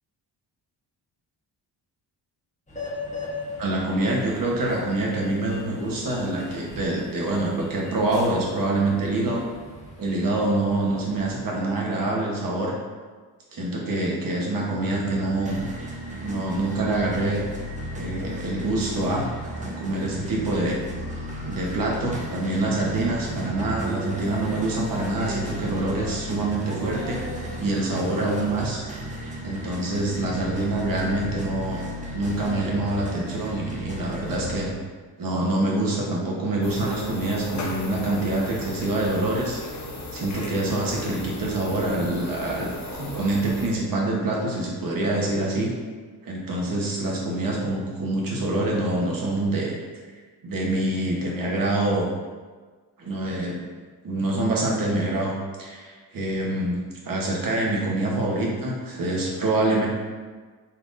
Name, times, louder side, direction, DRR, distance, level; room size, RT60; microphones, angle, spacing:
sound 1, 2.7-11.5, left 2 dB, 15° left, 1.1 m, -40 dB
voice 1, 3.6-9.4 10.0-12.7 13.5-15.6 16.2-17.4 17.9-19.2 19.6-20.8 21.5-27.2 27.6-28.8 29.4-31.8 32.1-34.7 35.2-39.6 40.1-45.7 46.2-49.7 50.4-52.1 53.0-53.6 54.0-55.3 55.6-56.8 57.0-59.9, right 2 dB, 50° right, -2 dB, 1.1 m, -25 dB
sound 2, 14.7-34.6, equal, 15° right, 0.8 m, -35 dB
sound 3, 36.6-43.7, left 2 dB, 40° left, 0.8 m, -36 dB
4.3 x 3.6 x 2.6 m, 1.5 s
cardioid pair, 85°, 43 cm